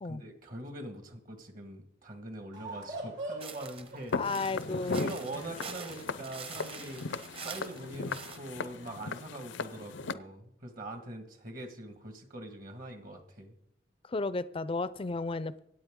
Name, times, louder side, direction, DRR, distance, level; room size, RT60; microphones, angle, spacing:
voice 1, 0.0-4.3 4.7-13.6, right 1 dB, 50° right, 5 dB, 1.8 m, -43 dB
sound 1, 2.5-9.0, right 2 dB, 70° right, 4.2 m, -46 dB
sound 2, 3.4-8.4, right 5 dB, 30° right, 1.0 m, -45 dB
Walk footsteps, 4.1-10.1, left 4 dB, 80° left, 0.6 m, -38 dB
voice 2, 4.2-5.1 14.1-15.6, left 3 dB, 30° left, 15 dB, 0.5 m, -33 dB
25.5 x 8.6 x 3.7 m, 0.77 s
head